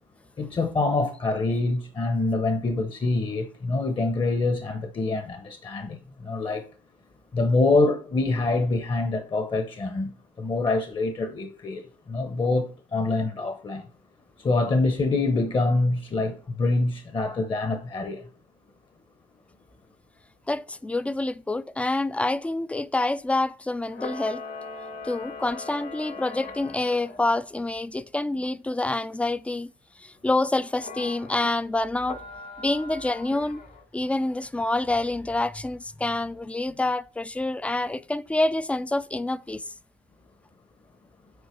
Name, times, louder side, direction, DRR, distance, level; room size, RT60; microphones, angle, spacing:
voice 1, 0.4-6.7 7.3-13.9 14.4-18.3, left 3 dB, 30° left, 0.9 m, -25 dB
voice 2, 20.5-24.4 25.0-29.7 30.0-32.2 32.6-33.6 33.9-39.6, left 2 dB, 5° left, 0.4 m, -27 dB
Camera, 23.9-27.2 30.8-31.5 32.0-33.8, left 4 dB, 60° left, 1.9 m, -40 dB
8.1 x 4.6 x 4.4 m
cardioid pair, 110°, 17 cm